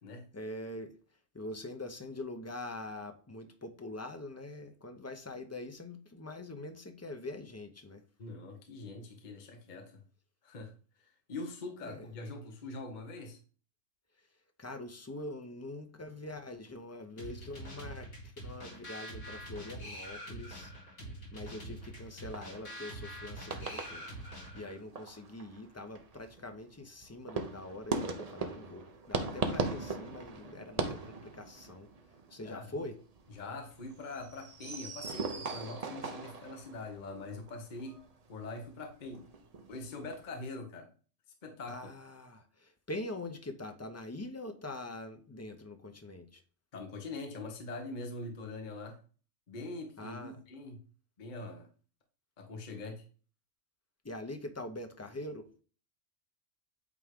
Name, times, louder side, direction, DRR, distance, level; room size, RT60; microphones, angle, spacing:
voice 1, 0.3-0.9 1.3-8.0 11.9-12.1 14.6-18.1 18.4-20.7 21.3-24.1 24.5-31.9 32.3-32.9 41.7-46.4 50.0-50.4 54.0-55.5, left 2 dB, 20° left, 6 dB, 0.4 m, -43 dB
voice 2, 8.2-10.0 10.4-13.4 32.4-32.9 33.3-38.0 38.3-39.2 39.7-40.9 41.4-41.9 46.7-49.0 49.5-50.8 51.2-51.7 52.4-53.0, left 2 dB, 40° left, 3 dB, 1.0 m, -43 dB
sound 1, 17.2-24.8, right 1 dB, 70° left, 2.6 m, -45 dB
sound 2, 21.4-23.2 23.4-24.6 24.9-40.3, right 4 dB, 40° right, 0.7 m, -40 dB
8.3 x 3.5 x 3.5 m, 0.38 s
omnidirectional pair, 1.3 m